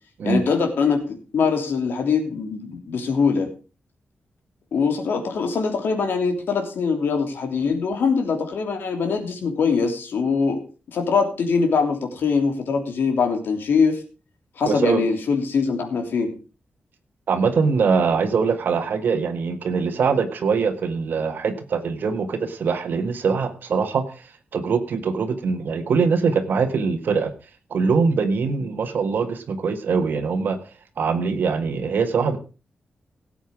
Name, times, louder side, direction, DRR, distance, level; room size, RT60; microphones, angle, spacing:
voice 1, 0.2-3.5 4.7-10.6 10.9-14.0 14.6-16.3, left 5 dB, 80° left, 4 dB, 3.1 m, -22 dB
voice 2, 14.7-15.0 17.3-24.2 24.5-27.3 27.7-30.6 31.0-32.4, right 5 dB, 65° right, 8 dB, 1.7 m, -22 dB
17.5 x 8.1 x 4.7 m, 0.33 s
wide cardioid pair, 165°, 4 cm